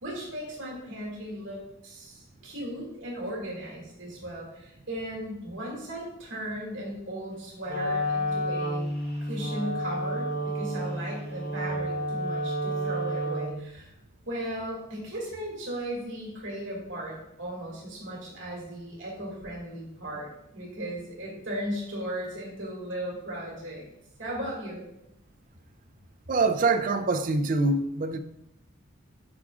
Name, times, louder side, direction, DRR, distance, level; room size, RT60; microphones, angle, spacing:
voice 1, 0.0-8.9 9.2-13.9 14.2-23.9 24.2-24.9, right 1 dB, 65° right, -4 dB, 2.1 m, -36 dB
Wind instrument woodwind instrument, 7.6-13.7, equal, 50° left, 1.4 m, -30 dB
voice 2, 26.3-28.2, right 3 dB, 40° right, 8 dB, 0.4 m, -24 dB
8.6 x 4.8 x 2.4 m, 0.82 s
head